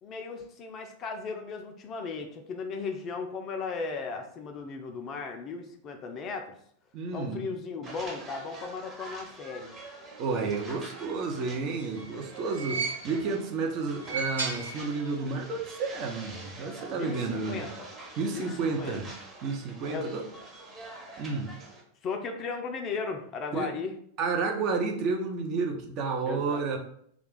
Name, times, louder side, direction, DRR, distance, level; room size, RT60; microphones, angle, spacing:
voice 1, 0.0-6.6 7.1-9.7 16.9-17.9 18.3-19.0 19.9-20.1 22.0-23.9 26.3-26.8, left 4 dB, 30° left, 4 dB, 0.4 m, -36 dB
voice 2, 6.9-7.5 10.2-17.6 18.2-19.1 19.4-20.2 21.2-21.5 23.5-23.7 24.2-26.8, right 4 dB, 40° right, 2 dB, 0.6 m, -31 dB
sound 1, 7.8-21.8, right 2 dB, 20° right, 0.9 m, -46 dB
sound 2, 11.6-13.4 13.9-15.3 15.6-15.7 16.8-16.9, right 4 dB, 75° right, 0.9 m, -36 dB
2.3 x 2.3 x 3.7 m, 0.65 s
figure-of-eight pair, 90°, 0 cm